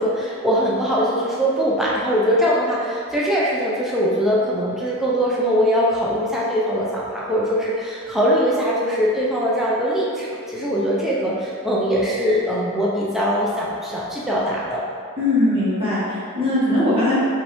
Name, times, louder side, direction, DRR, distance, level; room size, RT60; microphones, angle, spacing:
voice 1, 0.0-14.8, equal, ahead, -6 dB, 0.5 m, -21 dB
voice 2, 15.2-17.1, left 1 dB, 25° right, -10 dB, 1.3 m, -20 dB
5.2 x 2.7 x 3.4 m, 2.3 s
head